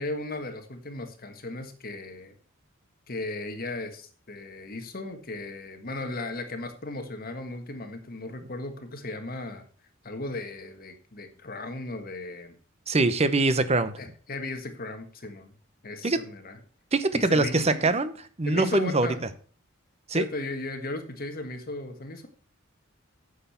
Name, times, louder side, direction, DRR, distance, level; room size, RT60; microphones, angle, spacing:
voice 1, 0.0-2.3 3.1-9.6 10.0-12.6 14.0-15.5 15.8-16.6 17.1-17.9 18.5-19.2 20.1-22.3, left 2 dB, 45° left, 6 dB, 1.6 m, -36 dB
voice 2, 12.9-13.9 16.0-16.2 16.9-19.1 20.1-20.2, right 2 dB, 30° right, 12 dB, 0.8 m, -23 dB
9.1 x 6.7 x 5.7 m, 0.41 s
head